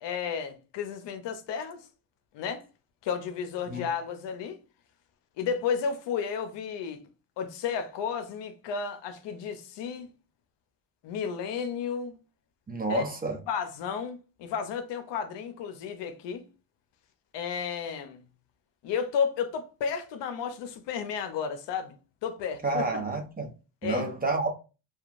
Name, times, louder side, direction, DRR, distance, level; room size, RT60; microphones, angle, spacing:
voice 1, 0.0-1.8 2.3-2.6 3.0-4.6 5.4-7.0 7.4-10.1 11.0-12.2 12.9-13.0 13.5-16.4 17.3-18.2 18.8-21.9 22.2-23.0 23.8-24.0, left 6 dB, 80° left, 0.6 m, -32 dB
voice 2, 12.7-13.4 22.6-23.5 23.8-24.5, right 3 dB, 20° right, 0.7 m, -29 dB
2.8 x 2.3 x 2.4 m
cardioid pair, 80°, 42 cm